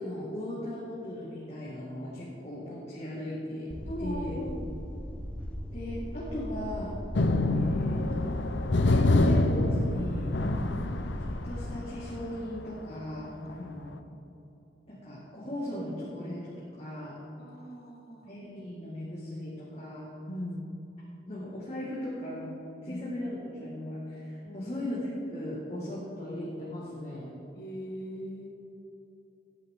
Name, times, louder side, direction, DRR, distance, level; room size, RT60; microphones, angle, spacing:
voice 1, 0.0-3.7 4.0-4.4 5.7-7.0 7.5-8.3 8.7-10.3 11.4-13.9 14.9-17.2 18.2-20.1 21.2-22.5 22.8-27.3, left 1 dB, 35° left, -7 dB, 2.2 m, -37 dB
sound 1, 3.7-11.7, equal, 5° left, 0.9 m, -39 dB
voice 2, 3.9-4.6 10.5-10.8 13.3-13.7 17.4-18.3 20.3-20.7 22.9-23.0 24.4-24.7 27.5-28.5, left 1 dB, 55° left, 2 dB, 1.4 m, -40 dB
sound 2, 7.1-12.5 13.5-13.6 13.9-14.0, left 2 dB, 80° left, 0.7 m, -26 dB
17.5 x 9.8 x 3.8 m, 2.9 s
head